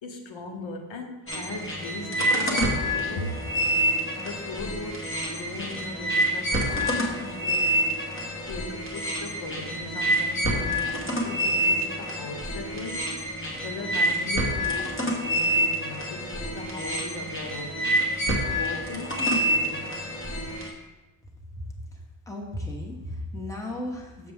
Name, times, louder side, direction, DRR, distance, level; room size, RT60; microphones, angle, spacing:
voice 1, 0.0-3.4 4.2-7.7 8.5-13.2 13.6-17.9 18.5-20.2, left 2 dB, 75° left, 4 dB, 1.0 m, -39 dB
sound 1, 1.3-20.7, equal, 25° left, 1.2 m, -27 dB
voice 2, 22.3-24.3, left 1 dB, 5° left, -1 dB, 1.0 m, -35 dB
6.8 x 6.8 x 3.5 m, 1.1 s
wide cardioid pair, 160°, 46 cm